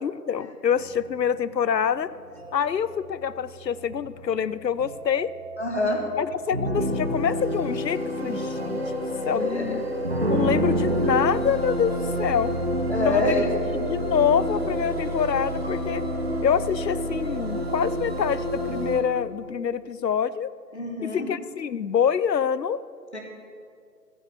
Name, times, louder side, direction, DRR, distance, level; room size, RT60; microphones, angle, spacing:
voice 1, 0.0-2.1 2.5-5.3 6.2-8.8 9.3-9.8 10.3-12.5 13.0-13.5 13.7-16.1 16.4-20.5 21.0-22.8, left 8 dB, 80° left, 17 dB, 0.6 m, -26 dB
sound 1, 0.7-19.0, equal, 40° right, 1.1 m, -29 dB
voice 2, 5.6-6.0 9.4-9.8 12.9-13.6 20.7-21.3 23.1-23.2, left 1 dB, 40° left, 1 dB, 1.7 m, -26 dB
14.0 x 7.1 x 7.1 m, 2.3 s
figure-of-eight pair, 170°, 49 cm